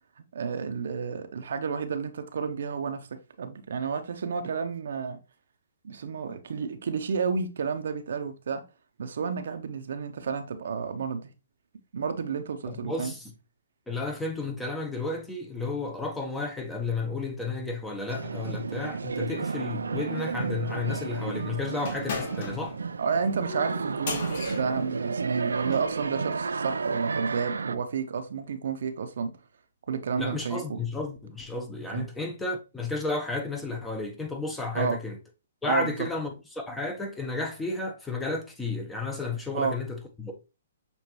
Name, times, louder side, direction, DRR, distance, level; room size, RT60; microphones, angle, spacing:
voice 1, 0.2-5.2 5.8-8.6 9.0-11.3 11.9-13.1 23.0-29.3 29.9-30.8 31.9-32.1 34.7-35.0 35.7-36.1 39.5-39.8, right 5 dB, 65° right, 0.7 m, -31 dB
voice 2, 12.7-13.2 13.9-22.7 30.2-35.2 35.6-40.4, left 3 dB, 5° left, 0.8 m, -32 dB
sound 1, 18.1-27.8, right 4 dB, 85° right, 0.3 m, -32 dB
sound 2, 21.8-25.9, left 5 dB, 50° left, 1.1 m, -38 dB
6.8 x 2.6 x 3.0 m
hypercardioid pair, 140°, 0 cm